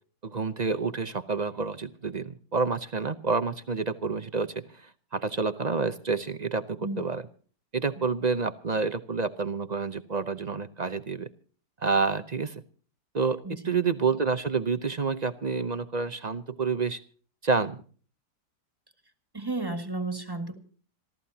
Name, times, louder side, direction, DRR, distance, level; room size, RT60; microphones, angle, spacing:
voice 1, 0.2-7.2 7.7-11.3 11.8-12.6 13.1-17.0 17.4-17.8, right 4 dB, 40° right, 10 dB, 0.6 m, -28 dB
voice 2, 19.3-20.6, right 2 dB, 15° right, 7 dB, 1.8 m, -33 dB
27.0 x 14.0 x 2.8 m, 0.42 s
omnidirectional pair, 1.8 m